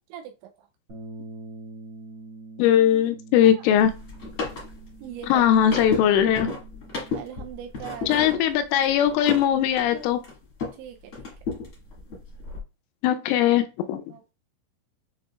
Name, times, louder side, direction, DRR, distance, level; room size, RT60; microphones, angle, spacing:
Bass guitar, 0.9-7.1, right 2 dB, 60° right, 1.4 m, -45 dB
voice 1, 2.6-3.9 5.3-6.5 8.1-10.2 13.0-14.0, left 10 dB, 85° left, 8 dB, 2.9 m, -20 dB
sound 1, 3.8-10.8 11.1-12.6, left 4 dB, 60° left, 1.3 m, -34 dB
voice 2, 5.0-5.4 7.1-8.3 10.8-11.3 14.1-14.3, right 10 dB, 85° right, 3 dB, 2.7 m, -40 dB
7.7 x 2.8 x 2.3 m, 0.30 s
omnidirectional pair, 5.6 m